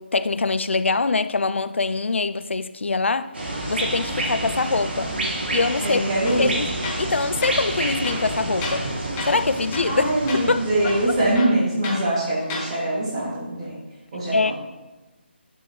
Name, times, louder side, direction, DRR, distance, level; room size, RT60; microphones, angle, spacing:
voice 1, 0.0-3.3 3.7-5.1 5.5-6.0 6.4-6.7 7.0-8.9 9.2-10.1 10.5-10.6 14.3-14.5, left 3 dB, 85° left, 0.5 m, -23 dB
sound 1, 3.3-11.3, right 1 dB, 60° right, 1.8 m, -29 dB
voice 2, 5.8-6.5 9.9-13.8 14.1-14.5, right 1 dB, 30° right, 2.5 m, -23 dB
Tools, 6.2-6.5 6.8-7.1 7.4-7.6 8.0-8.9 9.2-9.4 9.7-10.0 10.3-10.4 10.8-12.0 12.4-12.7, left 3 dB, 15° left, 1.1 m, -32 dB
10.5 x 6.3 x 3.2 m
figure-of-eight pair, 165°, 6 cm